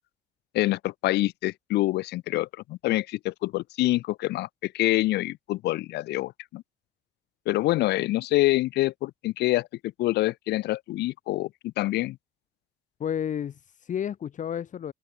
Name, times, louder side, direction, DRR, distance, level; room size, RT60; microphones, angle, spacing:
voice 1, 0.5-6.6 7.5-12.2, left 17 dB, 80° left, 1.8 m, -26 dB
voice 2, 13.0-14.9, left 9 dB, 50° left, 2.6 m, -31 dB
open air
cardioid pair, 110°, 17 cm